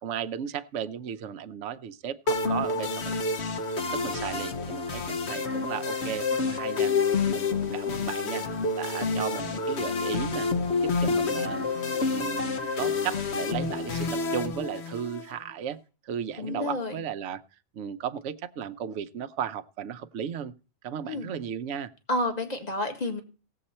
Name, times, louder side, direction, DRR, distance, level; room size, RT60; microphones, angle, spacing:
voice 1, 0.0-3.1 3.9-6.9 7.3-8.4 8.8-10.5 10.8-11.7 12.1-15.8 16.0-17.4 17.7-20.5 20.8-21.9, right 8 dB, 65° right, 10 dB, 1.0 m, -35 dB
sound 1, 2.3-15.3, left 4 dB, 55° left, 1.2 m, -28 dB
voice 2, 16.4-17.0 21.1-21.3 22.1-23.2, left 1 dB, 30° left, 5 dB, 1.8 m, -30 dB
17.0 x 7.6 x 4.3 m, 0.35 s
omnidirectional pair, 1.4 m